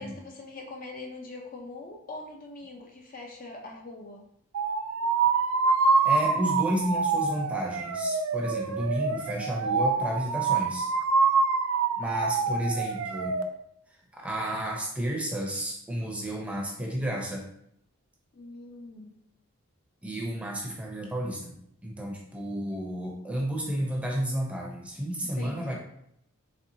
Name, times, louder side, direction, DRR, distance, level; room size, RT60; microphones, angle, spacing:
voice 1, 0.0-4.2 18.3-19.2 25.4-25.7, left 2 dB, 40° left, 0 dB, 0.5 m, -42 dB
sound 1, 4.5-13.4, right 4 dB, 75° right, 0.4 m, -26 dB
voice 2, 6.0-10.9 12.0-13.4 13.9-17.4 20.0-25.7, equal, 5° right, -2 dB, 0.7 m, -32 dB
4.2 x 3.4 x 2.7 m, 0.72 s
head